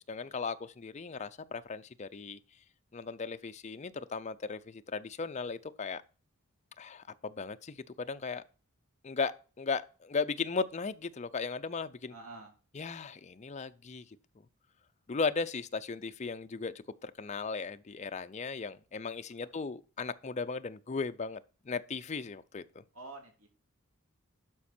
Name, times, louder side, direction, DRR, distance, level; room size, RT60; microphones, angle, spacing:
voice 1, 0.0-2.4 2.9-6.0 6.8-8.4 9.0-12.1 12.8-14.2 15.1-16.7 17.0-22.8, left 4 dB, 30° left, 0.5 m, -37 dB
voice 2, 12.1-12.5 19.6-19.7 22.9-23.5, right 3 dB, 70° right, 3.2 m, -49 dB
12.0 x 5.2 x 4.3 m
head